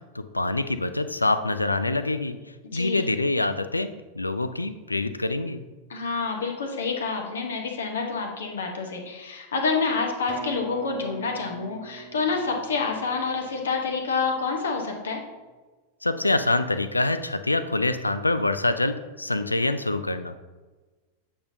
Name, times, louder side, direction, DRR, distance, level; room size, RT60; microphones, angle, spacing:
voice 1, 0.1-2.4 2.7-3.9 4.1-5.6 16.0-20.3, left 2 dB, 85° left, 11 dB, 0.4 m, -25 dB
voice 2, 2.7-3.1 5.9-15.2, left 4 dB, 65° left, 2 dB, 1.0 m, -28 dB
sound 1, 10.3-14.1, right 3 dB, 40° right, 1.1 m, -41 dB
8.5 x 5.4 x 2.7 m, 1.3 s
figure-of-eight pair, 90°, 0 cm